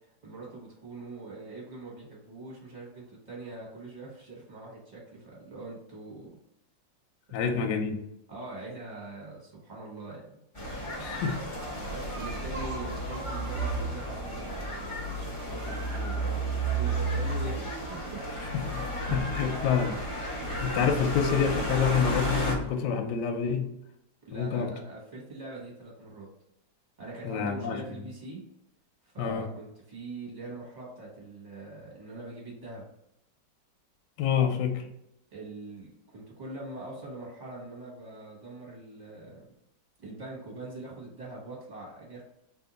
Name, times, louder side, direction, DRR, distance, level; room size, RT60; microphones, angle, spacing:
voice 1, 0.2-6.3 7.3-7.4 8.3-10.4 11.8-17.6 17.9-18.4 24.2-26.3 27.0-28.4 29.0-32.9 35.3-39.4 40.0-42.3, right 2 dB, 30° right, -4 dB, 1.0 m, -43 dB
voice 2, 7.3-8.0 11.0-11.4 19.1-20.3 20.6-23.7 24.3-24.7 27.2-27.8 29.2-29.5 34.2-34.9, left 7 dB, 75° left, 4 dB, 1.1 m, -27 dB
sound 1, 10.5-22.5, right 1 dB, 45° left, 0.4 m, -32 dB
2.8 x 2.7 x 3.9 m, 0.80 s
omnidirectional pair, 2.1 m